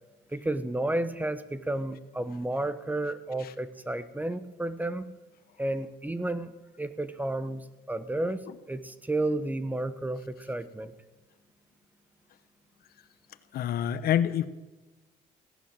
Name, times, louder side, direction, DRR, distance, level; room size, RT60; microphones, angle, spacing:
voice 1, 0.3-5.0 5.6-6.5 6.8-10.9, right 1 dB, 10° right, 13 dB, 1.0 m, -32 dB
voice 2, 13.5-14.5, left 10 dB, 65° left, 14 dB, 1.0 m, -26 dB
16.5 x 11.0 x 7.4 m, 1.1 s
cardioid pair, 110°, 17 cm